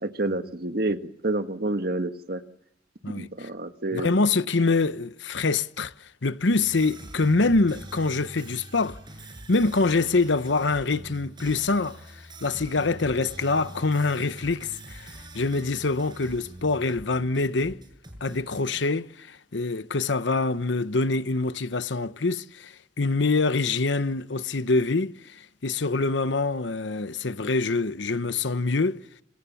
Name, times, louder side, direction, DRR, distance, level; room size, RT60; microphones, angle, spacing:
voice 1, 0.0-1.0 1.2-2.4 3.2-4.1, right 2 dB, 55° right, 1.7 m, -28 dB
voice 2, 3.0-3.5 3.9-9.0 9.5-17.8 18.2-29.0, left 3 dB, 75° left, 0.9 m, -25 dB
sound 1, 6.5-18.8, right 1 dB, 25° right, 6.4 m, -44 dB
27.0 x 26.5 x 7.1 m
head